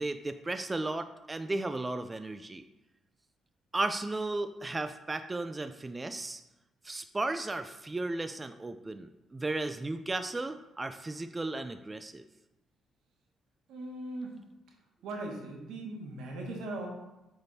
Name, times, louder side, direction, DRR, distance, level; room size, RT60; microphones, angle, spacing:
voice 1, 0.0-2.7 3.7-6.4 6.8-12.2, right 2 dB, 20° right, 9 dB, 0.3 m, -35 dB
voice 2, 13.7-14.4 15.0-16.9, right 2 dB, 85° right, 1 dB, 1.4 m, -39 dB
8.1 x 3.5 x 4.1 m, 0.96 s
cardioid pair, 90°, 0 cm